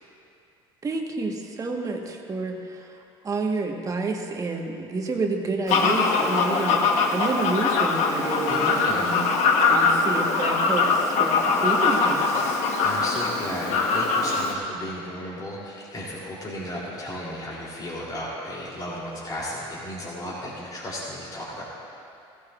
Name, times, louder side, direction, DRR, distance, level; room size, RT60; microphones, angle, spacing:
voice 1, 0.8-2.9 3.2-6.8 7.0-12.5, right 3 dB, 30° right, 2 dB, 1.4 m, -29 dB
Fowl, 5.7-14.5, left 4 dB, 70° left, 1.2 m, -22 dB
voice 2, 8.5-9.2 12.8-21.6, left 1 dB, 30° left, -7 dB, 3.3 m, -34 dB
16.5 x 14.5 x 2.5 m, 2.6 s
supercardioid pair, 95°, 12 cm